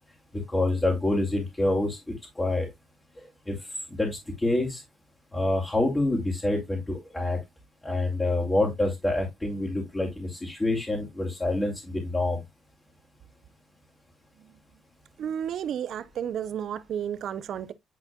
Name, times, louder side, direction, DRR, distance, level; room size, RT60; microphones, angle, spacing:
voice 1, 0.3-2.0 2.4-2.7 3.5-3.6 3.9-4.8 5.3-7.4 7.8-12.4, left 2 dB, 15° left, 2.6 m, -27 dB
voice 2, 15.2-17.7, right 9 dB, 70° right, 0.7 m, -32 dB
10.0 x 4.3 x 2.3 m
cardioid pair, 90°, 0 cm